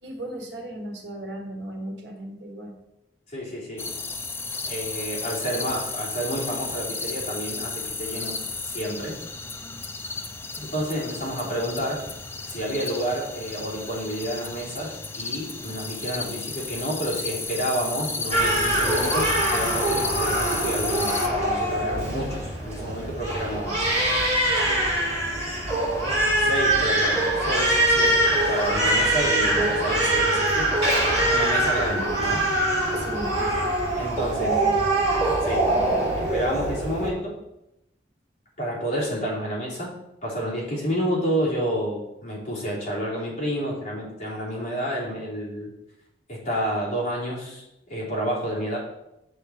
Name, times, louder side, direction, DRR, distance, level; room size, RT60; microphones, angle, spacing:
voice 1, 0.0-2.7 33.0-33.7 34.4-34.8, right 1 dB, 60° right, 1 dB, 1.6 m, -36 dB
voice 2, 3.3-3.9 4.7-8.3 8.6-9.2 10.6-12.0 12.5-23.9 26.4-30.7 31.0-32.4 33.9-34.8 35.4-35.7 36.2-37.4 38.6-39.9 40.2-45.7 46.3-47.6 47.9-48.8, equal, 40° left, -6 dB, 3.5 m, -30 dB
sound 1, 3.8-21.3, left 4 dB, 15° left, 0.6 m, -33 dB
Crying sobbing, 18.3-37.1, right 1 dB, 35° right, 2.9 m, -23 dB
8.2 x 7.0 x 4.4 m, 0.88 s
head